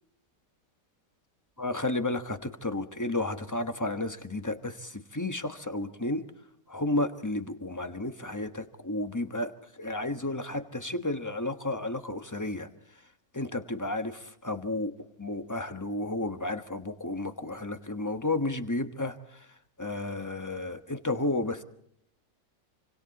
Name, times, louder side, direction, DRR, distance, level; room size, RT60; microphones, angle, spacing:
voice 1, 1.6-6.2 6.7-12.7 13.3-14.9 15.2-19.5 19.8-21.6, left 2 dB, 10° left, 9 dB, 1.1 m, -32 dB
27.0 x 25.5 x 4.2 m, 0.68 s
omnidirectional pair, 1.9 m